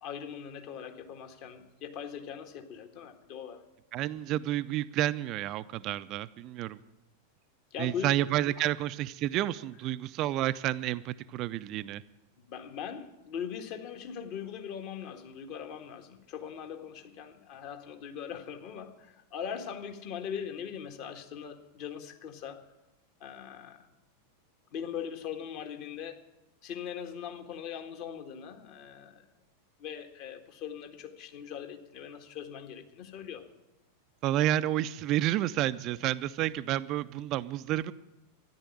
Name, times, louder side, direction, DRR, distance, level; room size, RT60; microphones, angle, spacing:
voice 1, 0.0-3.6 7.7-8.2 8.6-8.7 12.4-22.6 23.2-23.8 24.7-26.2 26.6-29.3 29.8-33.4, left 8 dB, 45° left, 6 dB, 1.6 m, -40 dB
voice 2, 3.9-6.8 7.8-12.0 34.2-37.9, right 13 dB, 40° right, 14 dB, 0.4 m, -30 dB
13.5 x 10.5 x 8.9 m, 0.97 s
figure-of-eight pair, 90°, 0 cm